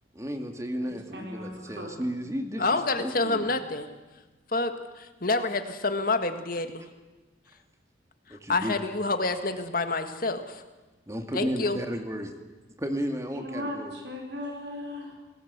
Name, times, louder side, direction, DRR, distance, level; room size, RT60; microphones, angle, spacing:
voice 1, 0.1-3.5 8.3-8.8 11.1-12.3 12.8-14.0, equal, 15° right, 5 dB, 2.2 m, -33 dB
voice 2, 0.8-1.9 13.3-15.1, left 1 dB, 65° right, 2 dB, 4.8 m, -37 dB
voice 3, 2.6-3.9 4.5-6.8 8.3-10.6 11.3-11.8, left 3 dB, 50° left, 8 dB, 1.9 m, -28 dB
28.0 x 19.0 x 8.2 m, 1.2 s
head